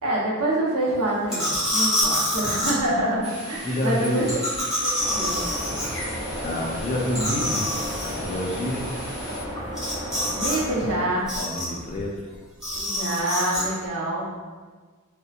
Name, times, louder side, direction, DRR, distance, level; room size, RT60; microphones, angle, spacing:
voice 1, 0.0-4.2 4.8-5.5 10.3-11.3 12.7-14.3, right 1 dB, 80° right, -5 dB, 0.7 m, -26 dB
sound 1, 1.3-2.7 4.3-6.1 6.4-6.5 6.8-6.9 7.1-8.1 9.7-10.6 10.8-11.8 12.6-13.6, left 1 dB, ahead, 1.0 m, -26 dB
sound 2, 3.2-9.4, left 1 dB, 25° right, 1.1 m, -40 dB
voice 2, 3.6-4.3 6.4-7.7 8.0-8.9 11.4-12.2, left 1 dB, 30° left, -1 dB, 0.3 m, -28 dB
sound 3, 5.0-10.9, equal, 45° right, 0.8 m, -33 dB
2.6 x 2.1 x 2.3 m, 1.5 s
head